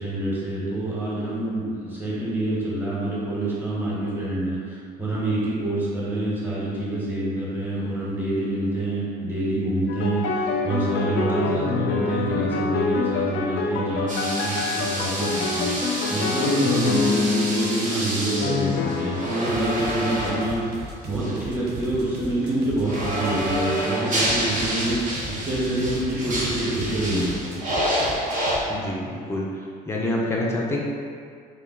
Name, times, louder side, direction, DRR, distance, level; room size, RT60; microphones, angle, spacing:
voice 1, 0.0-27.6, right 1 dB, 10° right, -7 dB, 1.1 m, -27 dB
sound 1, 9.9-17.9 18.4-19.3, left 4 dB, 85° left, 0.4 m, -26 dB
sound 2, 14.1-20.6 21.2-21.4 22.8-28.6, equal, 50° right, 1.0 m, -28 dB
sound 3, 19.5-23.6 24.2-28.6, right 2 dB, 70° right, 0.6 m, -37 dB
voice 2, 28.7-29.5 29.9-30.8, left 1 dB, 15° left, -3 dB, 0.5 m, -26 dB
3.3 x 2.3 x 3.7 m, 2.2 s
cardioid pair, 110°, 17 cm